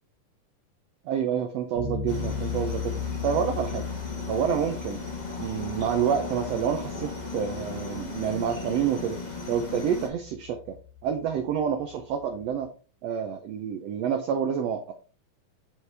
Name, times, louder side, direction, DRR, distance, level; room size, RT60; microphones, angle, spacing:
voice 1, 1.0-2.9 3.2-3.8 4.3-5.0 5.4-9.2 9.5-10.8 11.0-12.7 13.0-14.9, right 8 dB, 85° right, 6 dB, 1.4 m, -28 dB
sound 1, 1.8-12.6, left 7 dB, 40° right, 1.9 m, -38 dB
sound 2, 2.1-10.1, left 3 dB, 85° left, 0.4 m, -36 dB
8.3 x 4.5 x 3.4 m, 0.37 s
omnidirectional pair, 3.9 m